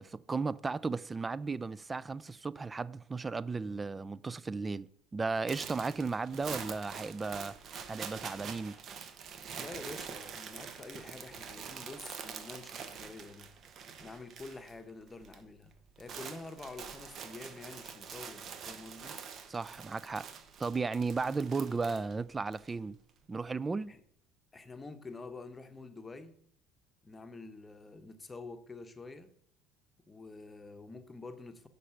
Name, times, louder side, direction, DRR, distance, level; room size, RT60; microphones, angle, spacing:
voice 1, 0.0-7.6 7.9-8.8 19.5-20.3 20.6-23.0 23.3-23.9, right 4 dB, 25° right, 0.3 m, -35 dB
sound 1, 5.5-14.8 15.0-15.4 15.7-22.7, right 6 dB, 50° right, 0.9 m, -45 dB
voice 2, 9.6-13.5 14.0-15.7 16.0-19.2 23.9-24.0 24.5-26.4 27.0-29.3 30.0-31.7, left 3 dB, 20° left, 0.9 m, -47 dB
6.5 x 5.2 x 5.7 m
hypercardioid pair, 80°, 0 cm